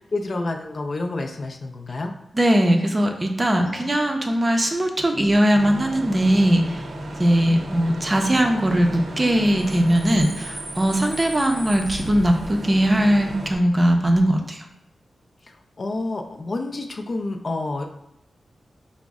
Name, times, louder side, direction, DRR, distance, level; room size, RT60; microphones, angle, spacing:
voice 1, 0.1-2.1 3.5-3.9 7.4-7.6 15.4-17.9, left 2 dB, 45° left, 3 dB, 0.4 m, -29 dB
voice 2, 2.3-6.8 7.2-14.6, right 1 dB, 25° right, 3 dB, 0.5 m, -20 dB
Bus / Idling / Screech, 5.5-13.5, right 1 dB, 80° right, 0.7 m, -34 dB
4.9 x 2.0 x 3.5 m, 0.82 s
wide cardioid pair, 100°, 0 cm